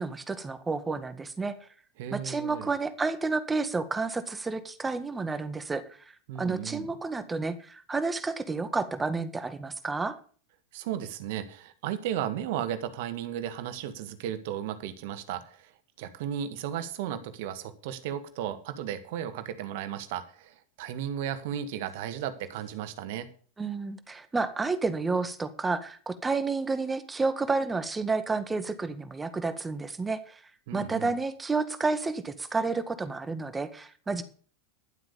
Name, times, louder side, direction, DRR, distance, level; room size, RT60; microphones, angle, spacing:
voice 1, 0.0-1.6 2.1-10.2 23.6-30.4 30.7-34.2, right 3 dB, 15° right, 11 dB, 1.7 m, -30 dB
voice 2, 2.0-2.7 6.3-6.9 10.7-15.7 16.0-23.3 30.7-31.1, right 10 dB, 60° right, 11 dB, 1.9 m, -35 dB
12.0 x 7.9 x 6.9 m, 0.43 s
hypercardioid pair, 95°, 0 cm